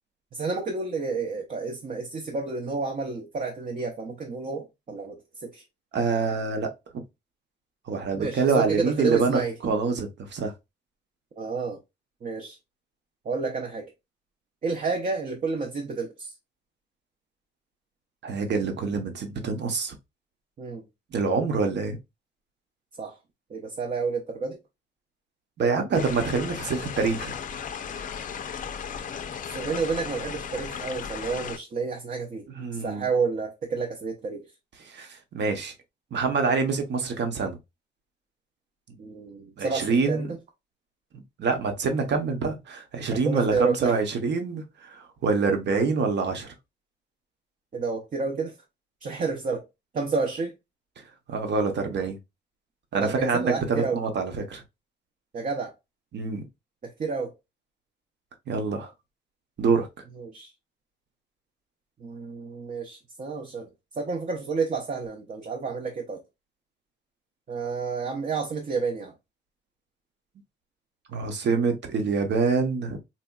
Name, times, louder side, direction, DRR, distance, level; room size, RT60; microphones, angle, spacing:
voice 1, 0.3-5.6 8.2-9.6 11.4-11.8 12.2-12.6 13.2-13.9 14.6-16.3 20.6-20.8 23.0-23.2 23.5-24.6 29.5-32.4 32.7-34.4 39.0-40.4 43.1-44.0 47.7-48.6 49.0-49.6 49.9-50.5 52.9-54.0 55.3-55.7 56.8-57.3 60.2-60.5 62.0-63.7 64.0-66.2 67.5-69.1, right 4 dB, 45° right, 0.7 m, -30 dB
voice 2, 5.9-6.7 7.9-10.5 18.2-19.9 21.1-22.0 25.6-27.4 32.5-33.0 34.8-35.7 36.1-37.6 39.6-40.3 41.4-46.5 51.0-51.1 51.3-52.2 52.9-54.6 56.1-56.4 58.5-58.9 59.6-59.9 71.1-73.0, right 4 dB, 65° right, 1.0 m, -26 dB
sound 1, 25.9-31.6, left 7 dB, 45° left, 0.4 m, -35 dB
4.1 x 2.7 x 2.3 m
wide cardioid pair, 140°, 19 cm